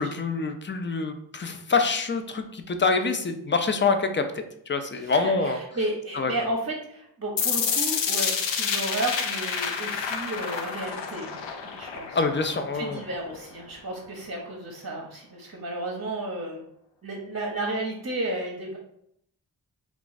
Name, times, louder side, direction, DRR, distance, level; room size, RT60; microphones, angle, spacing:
voice 1, 0.0-5.6 6.1-6.3 12.1-13.0, left 4 dB, 25° left, 7 dB, 0.4 m, -26 dB
voice 2, 5.0-11.4 11.6-12.2 12.7-16.6 17.0-18.8, right 1 dB, 35° right, 0 dB, 0.7 m, -33 dB
sound 1, 7.4-13.4, left 6 dB, 75° left, 0.6 m, -29 dB
2.4 x 2.4 x 3.9 m, 0.73 s
cardioid pair, 45°, 44 cm